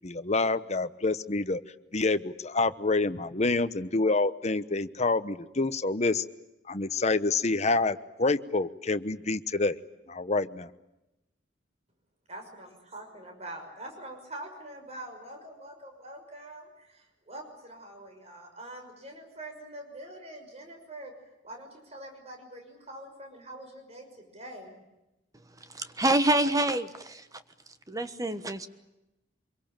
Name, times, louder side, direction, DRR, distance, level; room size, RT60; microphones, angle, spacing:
voice 1, 0.0-1.6 1.9-6.2 6.7-9.8 10.1-10.7, left 3 dB, 35° left, 12 dB, 1.0 m, -27 dB
voice 2, 12.3-21.1 21.4-24.8, right 1 dB, 35° right, 3 dB, 6.1 m, -44 dB
voice 3, 25.7-27.2 27.9-28.7, right 1 dB, 20° right, 10 dB, 1.2 m, -26 dB
25.5 x 23.5 x 9.0 m, 0.94 s
head